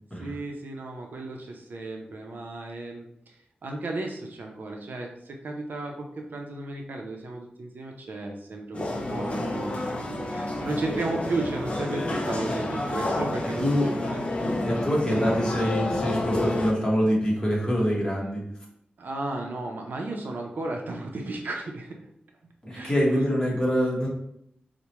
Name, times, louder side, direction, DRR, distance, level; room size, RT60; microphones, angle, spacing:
voice 1, 0.2-3.3 3.6-9.9 10.3-14.3 15.1-15.4 19.0-22.0 22.7-23.3, right 2 dB, 65° right, 2 dB, 0.5 m, -34 dB
sound 1, 8.7-16.7, left 1 dB, 35° left, 0.5 m, -29 dB
voice 2, 13.6-13.9 14.6-18.4 22.6-24.1, equal, 20° left, -4 dB, 1.1 m, -25 dB
4.5 x 2.1 x 3.0 m, 0.74 s
wide cardioid pair, 155°, 3 cm